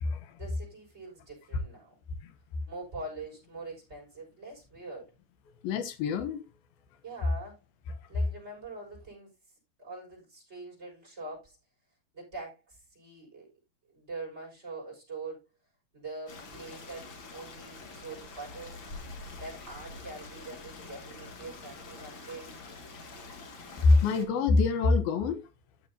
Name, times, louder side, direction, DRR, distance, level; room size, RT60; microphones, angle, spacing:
voice 1, 0.3-2.0 2.7-5.1 7.0-7.6 8.1-11.6 12.1-13.5 13.9-15.4 15.9-18.9 19.4-22.6, right 3 dB, 15° right, 6.3 m, -44 dB
voice 2, 5.6-6.4 23.8-25.4, left 3 dB, 70° left, 2.9 m, -24 dB
Stream, 16.3-24.3, left 3 dB, 50° left, 1.5 m, -46 dB
13.5 x 6.8 x 2.9 m
omnidirectional pair, 4.7 m